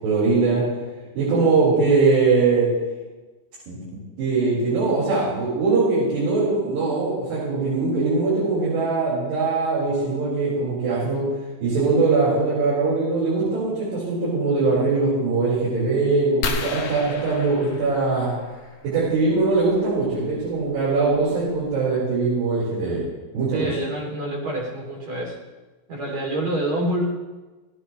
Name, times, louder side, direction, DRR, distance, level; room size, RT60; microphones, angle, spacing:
voice 1, 0.0-0.6 1.2-2.7 3.7-3.8 4.2-11.2 11.6-18.3 18.8-23.0 23.3-23.7, right 3 dB, 75° right, -9 dB, 6.9 m, -21 dB
sound 1, 16.4-18.8 20.4-20.6 21.2-21.3 21.5-21.8, left 4 dB, 80° left, 1.2 m, -32 dB
voice 2, 23.5-25.4 25.9-27.1, right 1 dB, 45° right, -2 dB, 4.1 m, -27 dB
20.5 x 16.5 x 3.3 m, 1.2 s
omnidirectional pair, 4.8 m